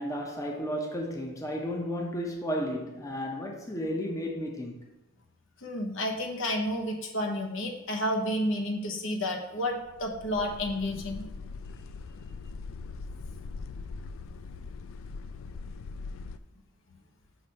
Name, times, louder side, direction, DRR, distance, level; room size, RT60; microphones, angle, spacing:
voice 1, 0.0-4.9, equal, 15° left, 0.7 m, -33 dB
voice 2, 5.6-11.2, left 1 dB, 70° left, 0.9 m, -31 dB
sound 1, 9.8-16.4, left 4 dB, 85° left, 0.3 m, -41 dB
6.0 x 3.3 x 5.2 m
head